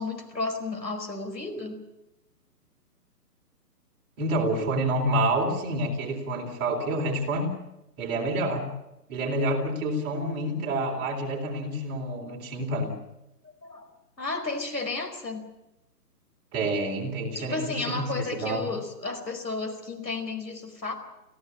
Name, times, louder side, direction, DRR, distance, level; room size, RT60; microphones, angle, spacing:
voice 1, 0.0-1.8 12.1-12.4 13.6-13.9 14.2-15.5 17.3-20.9, left 3 dB, 90° left, 5 dB, 4.9 m, -33 dB
voice 2, 4.2-7.5 8.0-8.7 9.1-13.0 16.5-18.6, right 1 dB, 20° right, 0 dB, 3.9 m, -28 dB
26.0 x 16.0 x 8.5 m, 0.90 s
figure-of-eight pair, 140°, 48 cm